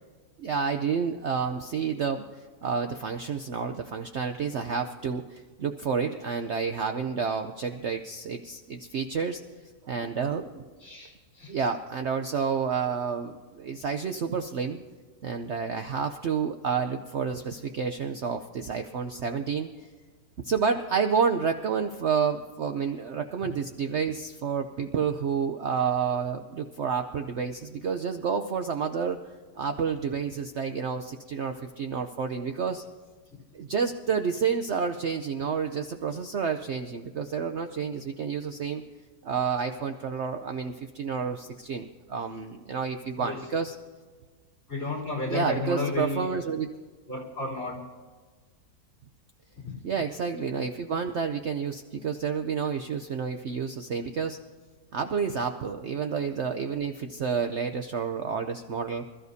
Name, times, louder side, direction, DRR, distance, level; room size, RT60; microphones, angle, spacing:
voice 1, 0.4-9.4 9.9-10.7 11.5-14.8 15.2-19.7 20.4-29.2 29.6-32.8 33.5-38.8 39.2-43.7 45.3-46.7 49.8-54.4 54.9-59.1, right 6 dB, 60° right, 6 dB, 0.8 m, -29 dB
voice 2, 10.8-11.5 43.2-43.4 44.7-46.3 47.1-47.8 49.6-49.7, left 2 dB, 40° left, -3 dB, 3.7 m, -32 dB
26.0 x 13.5 x 2.7 m, 1.5 s
omnidirectional pair, 1.7 m